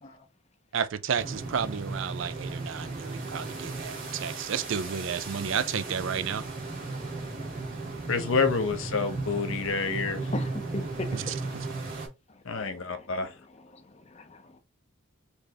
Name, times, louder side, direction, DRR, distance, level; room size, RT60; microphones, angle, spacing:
voice 1, 0.7-6.4 11.1-11.7, right 7 dB, 65° right, 0.4 m, -32 dB
sound 1, 1.1-12.1, right 3 dB, 40° right, 1.8 m, -36 dB
voice 2, 6.7-7.5 7.9-8.1 10.3-11.6 12.5-13.0 13.7-13.8 14.1-14.6, left 2 dB, 30° left, 0.6 m, -40 dB
voice 3, 8.1-10.3 12.4-13.3, left 4 dB, 70° left, 0.8 m, -28 dB
4.4 x 3.3 x 2.8 m
head